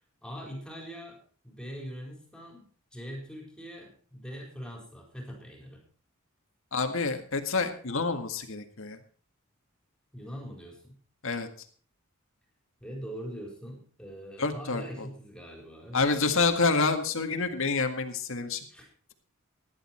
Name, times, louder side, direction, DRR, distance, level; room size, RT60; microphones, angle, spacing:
voice 1, 0.2-1.2 1.4-2.6 2.9-5.8 10.1-11.0 12.8-16.0 18.7-18.9, equal, 5° left, 0 dB, 4.3 m, -42 dB
voice 2, 6.7-9.0 11.2-11.5 14.4-15.1 15.9-18.6, left 4 dB, 65° left, 6 dB, 1.8 m, -28 dB
16.5 x 11.0 x 4.4 m, 0.43 s
head